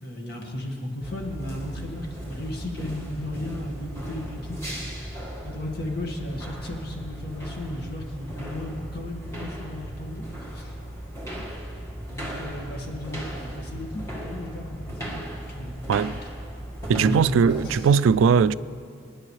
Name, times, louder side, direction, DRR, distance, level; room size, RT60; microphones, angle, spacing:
voice 1, 0.0-10.8 12.0-15.8 17.0-17.2 17.6-17.9, left 1 dB, 55° left, 1.8 m, -35 dB
sound 1, 1.0-17.8, equal, 15° left, 1.7 m, -37 dB
voice 2, 15.9-16.2 16.9-18.5, right 6 dB, 90° right, 0.3 m, -19 dB
25.5 x 10.0 x 3.2 m
head